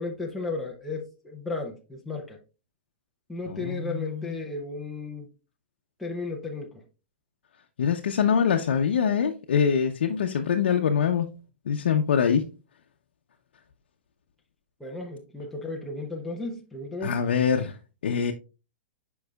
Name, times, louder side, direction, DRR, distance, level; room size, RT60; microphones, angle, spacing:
voice 1, 0.0-2.4 3.3-5.3 6.0-6.8 14.8-17.1, left 3 dB, ahead, 0.6 m, -34 dB
voice 2, 3.5-4.3 7.8-11.3 11.7-12.5 17.0-17.8 18.0-18.3, left 7 dB, 85° left, 0.7 m, -24 dB
7.9 x 5.3 x 2.3 m
hypercardioid pair, 175°, 6 cm